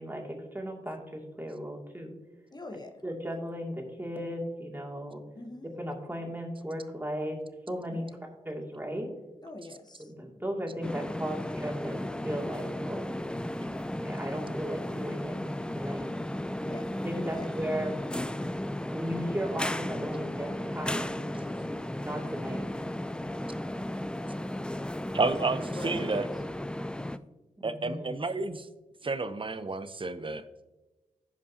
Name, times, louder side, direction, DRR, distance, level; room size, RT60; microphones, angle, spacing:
voice 1, 0.0-2.1 3.0-5.2 5.8-7.4 7.7-8.0 8.5-9.1 10.0-13.1 14.0-15.4 15.7-16.1 17.0-18.0 18.9-21.1 22.0-22.6 27.6-28.2, equal, 15° right, -1 dB, 2.3 m, -36 dB
voice 2, 2.5-2.9 5.3-5.7 7.9-8.1 9.4-10.1 16.6-16.9 17.3-17.5 21.5-21.9 25.7-26.4 27.0-27.1, left 1 dB, 30° left, 5 dB, 1.0 m, -43 dB
sound 1, 10.8-27.2, left 1 dB, 5° left, 0.4 m, -35 dB
voice 3, 25.1-26.2 27.6-28.7 29.0-30.4, right 3 dB, 40° right, 12 dB, 0.7 m, -30 dB
15.5 x 5.2 x 2.8 m, 1.1 s
cardioid pair, 50°, 14 cm